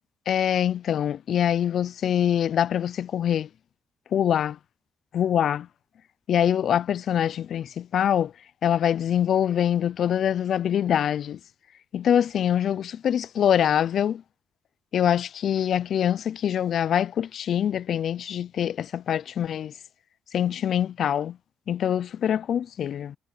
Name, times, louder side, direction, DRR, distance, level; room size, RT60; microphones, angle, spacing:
voice 1, 0.3-3.5 4.1-4.6 5.1-5.7 6.3-8.3 8.6-11.4 11.9-14.2 14.9-19.7 20.3-21.4 21.7-23.2, left 9 dB, 65° left, 0.4 m, -24 dB
cardioid pair, 90°, 0 cm